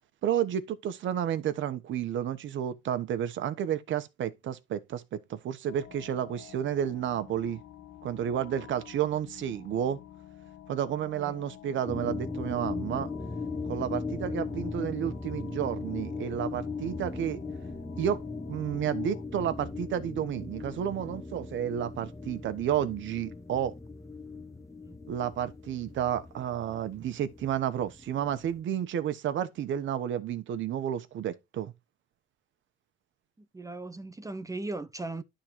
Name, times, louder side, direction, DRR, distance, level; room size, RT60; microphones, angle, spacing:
voice 1, 0.2-7.6 8.0-10.0 10.7-13.1 13.7-17.4 18.0-18.2 18.5-23.7 25.1-31.7, right 10 dB, 75° right, 1.0 m, -31 dB
sound 1, 5.7-19.2, left 11 dB, 85° left, 1.4 m, -50 dB
sound 2, 11.9-28.6, left 4 dB, 15° left, 1.3 m, -38 dB
voice 2, 33.4-35.2, right 2 dB, 15° right, 0.8 m, -38 dB
11.5 x 3.9 x 4.6 m
cardioid pair, 90°, 20 cm